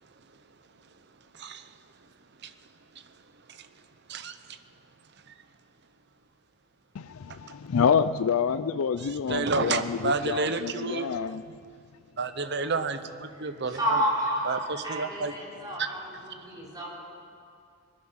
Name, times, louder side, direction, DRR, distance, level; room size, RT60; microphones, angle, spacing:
voice 1, 1.3-2.1 2.4-3.2 3.5-4.6 5.3-5.4 7.3-7.4 9.0-11.1 12.2-14.0 14.4-15.3 15.8-15.9, right 4 dB, 55° right, 0.8 m, -32 dB
voice 2, 6.9-11.4, left 7 dB, 85° left, 0.4 m, -27 dB
voice 3, 13.7-14.6 14.8-16.0 16.3-16.9, equal, 20° right, 3.6 m, -29 dB
20.5 x 11.0 x 6.4 m
head